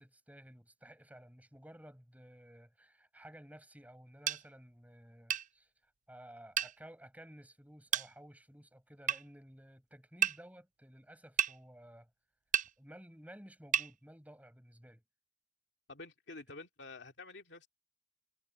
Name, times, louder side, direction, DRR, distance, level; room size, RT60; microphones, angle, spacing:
voice 1, 0.0-5.7 6.1-12.1 12.8-15.0, equal, 10° right, 6.5 m, -55 dB
sound 1, 4.3-4.4 5.3-5.5 6.6-6.7 7.9-8.1 9.1-9.2 10.2-10.4 11.4-11.5 12.5-12.7 13.7-13.9, right 9 dB, 45° right, 0.5 m, -31 dB
voice 2, 15.9-17.7, left 3 dB, 70° left, 2.5 m, -49 dB
head